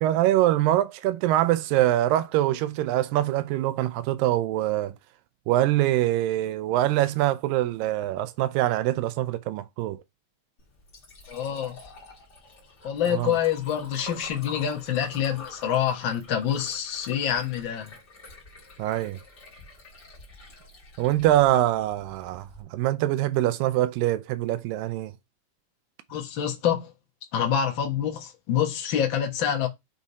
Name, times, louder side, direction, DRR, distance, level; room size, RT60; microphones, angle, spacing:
voice 1, 0.0-5.0 5.5-10.0 13.1-13.4 18.8-19.2 21.0-25.1, right 14 dB, 90° right, 2.3 m, -24 dB
Liquid, 10.6-22.6, left 3 dB, 35° left, 2.4 m, -47 dB
voice 2, 11.3-11.7 12.8-17.9 26.1-26.9 27.3-29.7, left 9 dB, 55° left, 1.4 m, -26 dB
6.4 x 3.6 x 4.1 m
omnidirectional pair, 3.9 m